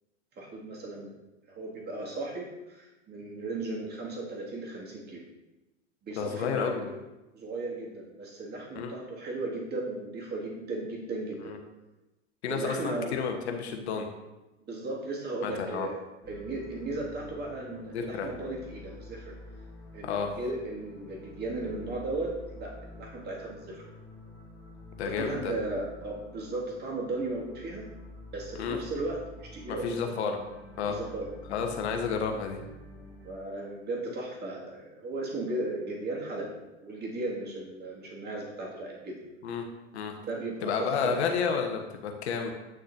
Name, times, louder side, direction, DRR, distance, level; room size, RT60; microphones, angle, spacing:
voice 1, 0.4-1.1 1.5-5.2 6.0-7.0 7.3-11.5 12.5-13.2 14.7-16.0 16.3-19.3 19.9-23.8 25.0-27.8 28.3-30.0 30.9-31.3 33.2-36.5 36.8-39.2 40.3-41.2, right 2 dB, 25° right, -3 dB, 2.3 m, -36 dB
voice 2, 6.1-6.9 8.7-8.9 11.4-11.6 12.4-14.1 15.4-15.9 17.9-18.3 20.0-20.3 25.0-25.5 28.6-28.8 29.7-30.4 30.8-31.0 31.5-32.6 39.4-39.6 39.9-40.1 40.6-42.5, left 6 dB, 65° left, 4 dB, 1.3 m, -31 dB
sound 1, 16.2-33.4, left 1 dB, 5° right, 1.5 m, -48 dB
9.1 x 6.3 x 2.8 m, 1.0 s
hypercardioid pair, 95°, 36 cm